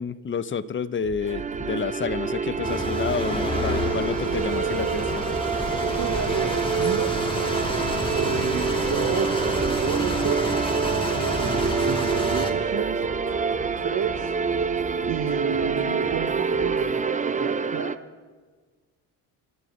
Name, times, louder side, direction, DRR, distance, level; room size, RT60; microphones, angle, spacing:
voice 1, 0.0-5.3, left 6 dB, 30° left, 16 dB, 0.8 m, -29 dB
sound 1, 1.0-17.0, right 6 dB, 65° right, 4.1 m, -41 dB
sound 2, 1.2-17.9, right 5 dB, 20° right, 0.7 m, -26 dB
sound 3, 2.6-12.5, left 1 dB, 10° left, 2.1 m, -30 dB
voice 2, 5.8-7.1 8.2-10.4 11.1-13.0 13.6-14.3 15.0-17.9, right 7 dB, 45° right, 3 dB, 1.3 m, -31 dB
26.5 x 12.5 x 3.3 m, 1.4 s
supercardioid pair, 70°, 42 cm